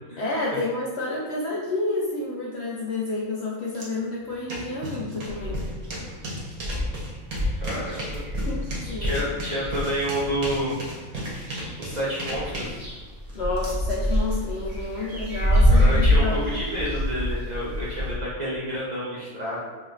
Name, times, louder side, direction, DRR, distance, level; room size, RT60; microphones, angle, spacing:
voice 1, 0.2-5.6 8.4-9.2 13.3-16.5, left 2 dB, 65° left, -4 dB, 0.7 m, -29 dB
sound 1, 3.7-3.9 4.2-14.3, right 1 dB, 75° right, 1.4 m, -35 dB
sound 2, 5.3-5.9 6.2-6.3 6.5-10.6 11.1-12.0 12.3-18.1, equal, ahead, 1.1 m, -25 dB
voice 2, 7.6-8.2 9.0-10.7 11.8-12.8 15.7-19.7, equal, 40° right, -7 dB, 0.7 m, -29 dB
4.9 x 3.1 x 2.5 m, 1.3 s
omnidirectional pair, 1.5 m